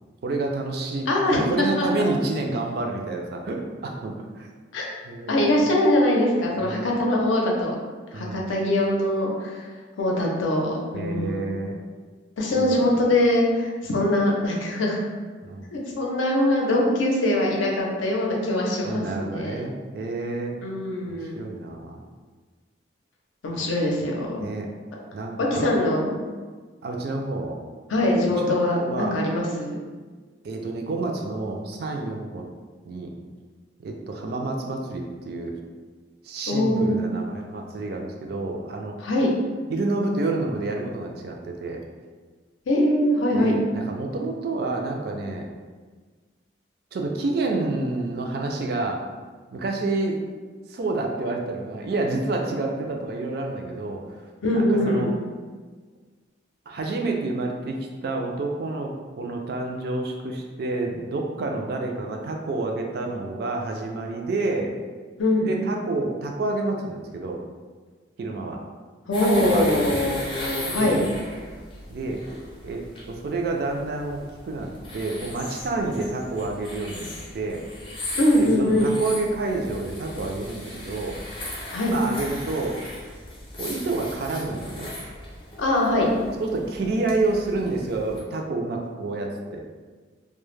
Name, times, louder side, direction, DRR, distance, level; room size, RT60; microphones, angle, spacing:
voice 1, 0.2-4.5 5.0-5.5 6.5-6.9 8.1-8.5 10.9-11.8 12.6-12.9 15.4-15.7 18.8-20.6 21.1-22.0 23.5-23.7 24.4-24.7 25.1-25.7 26.8-27.6 28.4-29.2 30.4-32.5 32.8-33.1 33.8-35.5 36.2-39.0 39.7-41.8 43.3-45.5 46.9-49.0 49.5-50.2 50.7-54.2 54.5-55.1 56.7-64.7 65.4-67.4 68.2-68.6 69.2-70.2 70.7-71.1 71.9-72.2 72.6-74.2 74.5-77.6 78.4-81.2 81.9-82.8 83.6-84.9 86.4-89.6, right 2 dB, 55° right, 1 dB, 0.3 m, -29 dB
voice 2, 1.1-1.9 4.7-4.9 5.3-7.8 8.1-9.6 10.0-11.6 12.4-15.0 15.7-19.6 20.6-21.5 23.4-24.5 25.5-26.2 27.9-29.8 36.5-37.1 39.0-39.3 42.7-43.6 54.4-55.1 65.2-65.5 69.1-71.0 78.2-78.9 81.7-81.9 85.6-86.1, left 1 dB, 85° left, -1 dB, 0.5 m, -22 dB
sound 1, 69.1-88.2, left 1 dB, 25° left, 0.5 m, -38 dB
2.1 x 2.0 x 3.1 m, 1.4 s
head